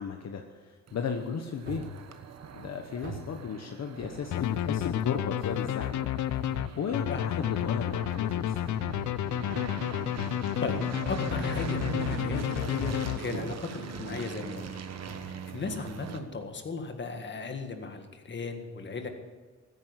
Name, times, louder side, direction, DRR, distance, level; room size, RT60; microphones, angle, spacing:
voice 1, 0.0-1.9 2.5-6.0 6.5-8.8, left 6 dB, 65° left, 5 dB, 1.1 m, -35 dB
sound 1, 0.9-16.2, right 7 dB, 60° right, 1.2 m, -41 dB
sound 2, 1.7-2.0 3.0-3.3 4.0-5.0 5.5-5.7 6.5-6.9 7.4-8.2 8.9-9.2 9.5-13.1 13.4-13.6 13.9-14.3 15.1-15.3 16.1-16.5 17.0-17.1, right 2 dB, 40° right, 3.8 m, -44 dB
sound 3, 4.3-13.6, left 12 dB, 80° left, 0.5 m, -31 dB
voice 2, 11.1-14.7 15.2-19.1, left 4 dB, 40° left, 5 dB, 1.8 m, -36 dB
15.0 x 9.4 x 8.1 m, 1.4 s
cardioid pair, 125°, 29 cm